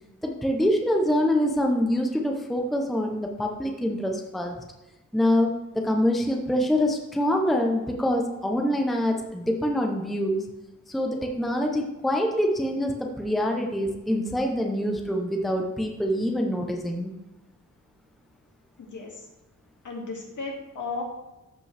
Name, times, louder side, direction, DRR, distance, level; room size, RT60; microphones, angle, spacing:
voice 1, 0.2-4.6 5.1-10.4 10.9-17.1, equal, ahead, 2 dB, 0.6 m, -25 dB
voice 2, 18.8-19.3 19.8-21.0, left 4 dB, 65° left, -1 dB, 2.2 m, -35 dB
14.0 x 5.2 x 3.3 m, 1.0 s
wide cardioid pair, 180°, 32 cm